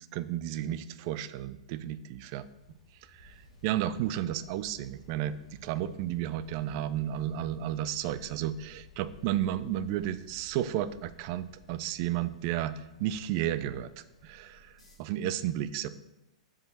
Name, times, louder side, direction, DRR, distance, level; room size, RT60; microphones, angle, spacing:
voice 1, 0.1-2.4 3.1-5.4 5.6-13.9 14.2-15.9, right 12 dB, 40° right, 15 dB, 0.4 m, -32 dB
sound 1, 2.4-13.5, left 3 dB, 5° left, 2.0 m, -61 dB
sound 2, 3.2-15.0, equal, 85° left, 1.7 m, -58 dB
7.3 x 4.9 x 4.2 m, 0.91 s
figure-of-eight pair, 105°, 3 cm